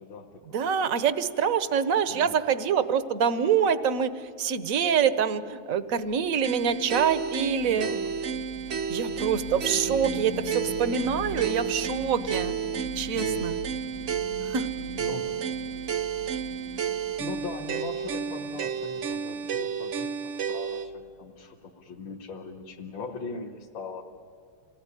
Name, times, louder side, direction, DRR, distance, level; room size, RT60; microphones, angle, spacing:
voice 1, 0.0-0.6 2.1-2.4 7.6-8.1 13.1-13.5 14.2-14.3 15.0-15.5 17.2-24.0, left 3 dB, 60° left, -3 dB, 2.4 m, -40 dB
voice 2, 0.5-7.9 8.9-12.5 12.9-13.6 14.4-14.7, right 7 dB, 50° right, 13 dB, 1.1 m, -26 dB
sound 1, 6.0-19.5, left 5 dB, 75° left, 2.5 m, -42 dB
sound 2, 6.4-20.9, right 7 dB, 80° right, 0.6 m, -31 dB
27.0 x 19.0 x 9.9 m, 2.3 s
omnidirectional pair, 2.4 m